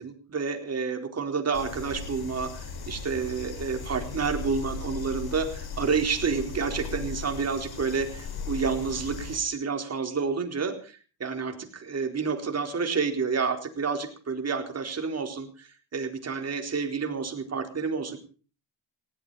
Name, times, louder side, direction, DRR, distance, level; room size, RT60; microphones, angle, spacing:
voice 1, 0.0-18.2, right 5 dB, 35° right, 6 dB, 4.2 m, -29 dB
sound 1, 1.5-9.4, left 5 dB, 60° left, 4.8 m, -37 dB
19.5 x 16.5 x 4.1 m, 0.38 s
cardioid pair, 120°, 43 cm